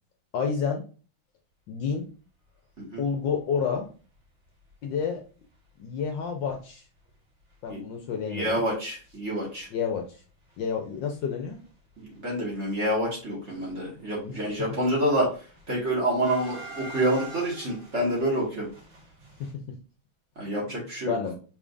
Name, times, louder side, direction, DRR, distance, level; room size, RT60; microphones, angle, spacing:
voice 1, 0.3-0.8 1.7-2.1 3.0-3.9 4.8-5.2 5.8-6.8 7.6-8.6 9.7-10.1 10.6-11.6 14.2-14.4 21.1-21.3, left 6 dB, 70° left, 4 dB, 1.3 m, -29 dB
sound 1, 3.5-3.7 4.2-4.3 4.5-4.7 5.5-5.6 6.0-6.2 6.5-6.6 6.9-9.2 9.4-10.1 10.4-19.5, right 3 dB, 60° right, 2.4 m, -47 dB
voice 2, 8.2-9.7 12.0-18.7 20.3-21.1, right 1 dB, 35° right, -3 dB, 1.7 m, -28 dB
5.0 x 3.6 x 2.5 m, 0.37 s
omnidirectional pair, 2.3 m